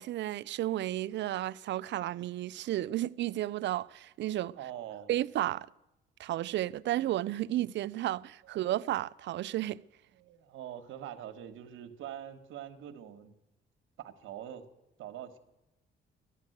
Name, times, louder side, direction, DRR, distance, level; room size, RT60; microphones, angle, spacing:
voice 1, 0.0-4.6 5.1-5.7 6.2-9.8, right 14 dB, 65° right, 0.4 m, -32 dB
voice 2, 4.6-5.1 10.1-13.4 14.0-14.7 15.0-15.4, right 10 dB, 85° right, 1.3 m, -44 dB
13.5 x 11.5 x 7.8 m
cardioid pair, 90°, 20 cm